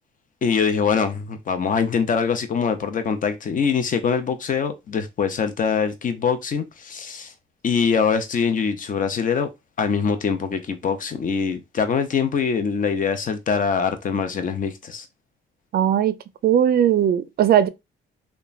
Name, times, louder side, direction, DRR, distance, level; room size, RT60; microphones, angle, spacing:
voice 1, 0.4-7.3 7.6-9.5 9.8-15.1, left 6 dB, 40° left, 0.6 m, -23 dB
voice 2, 15.7-16.2 16.4-17.7, right 10 dB, 50° right, 0.4 m, -18 dB
2.9 x 2.2 x 2.3 m
cardioid pair, 90°, 20 cm